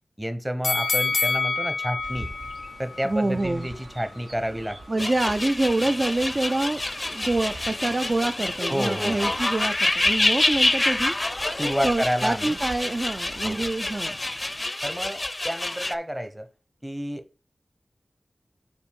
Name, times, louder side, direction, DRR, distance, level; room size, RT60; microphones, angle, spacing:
voice 1, 0.2-2.3 2.8-5.0 8.7-9.5 11.5-12.6 13.4-13.7 14.8-16.5 16.8-17.2, equal, 10° right, 0.9 m, -30 dB
sound 1, 0.6-3.7 4.2-4.3, left 4 dB, 85° left, 0.3 m, -27 dB
Chirp tweet, 2.0-14.6, right 2 dB, 75° right, 1.2 m, -45 dB
voice 2, 3.0-3.7 4.9-6.8 7.1-11.1 11.8-14.2, right 2 dB, 40° right, 0.4 m, -26 dB
sound 2, 5.0-15.9, left 2 dB, 30° left, 0.5 m, -27 dB
5.9 x 4.4 x 5.2 m
wide cardioid pair, 85°, 0 cm